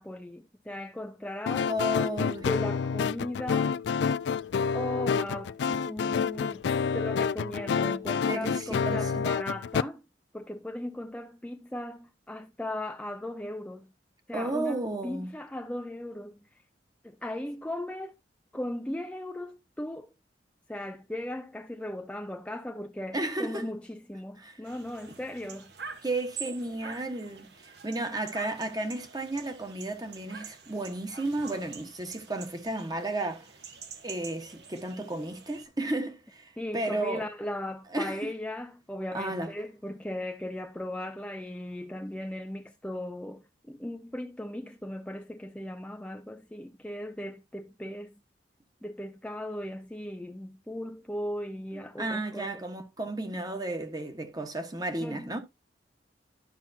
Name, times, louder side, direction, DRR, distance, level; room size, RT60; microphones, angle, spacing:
voice 1, 0.0-1.7 2.4-3.8 4.7-6.6 6.9-10.0 10.3-13.9 14.3-16.4 17.0-18.1 18.5-20.1 20.7-25.7 36.6-48.1 48.8-52.6 55.0-55.3, left 1 dB, 5° left, 0.4 m, -37 dB
sound 1, 1.5-9.8, left 6 dB, 70° left, 0.3 m, -28 dB
voice 2, 1.6-2.5 8.1-9.2 14.3-15.3 23.1-23.7 24.4-24.6 25.1-25.2 26.0-33.5 34.0-37.3 37.9-38.3 39.1-39.5 51.7-55.4, right 2 dB, 20° right, 1.3 m, -33 dB
sound 2, 24.6-35.6, right 6 dB, 65° right, 1.4 m, -46 dB
12.0 x 5.8 x 2.8 m
head